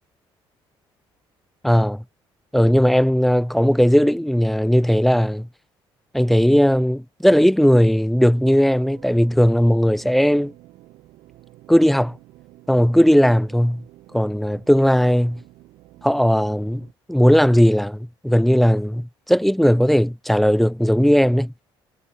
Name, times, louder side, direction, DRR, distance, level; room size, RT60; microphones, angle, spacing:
voice 1, 1.6-2.0 2.5-5.5 6.1-10.5 11.7-12.2 12.7-13.8 14.1-15.4 16.0-21.5, equal, ahead, 0.3 m, -17 dB
sound 1, 8.3-16.9, right 17 dB, 80° right, 4.6 m, -49 dB
cardioid pair, 90°, 10 cm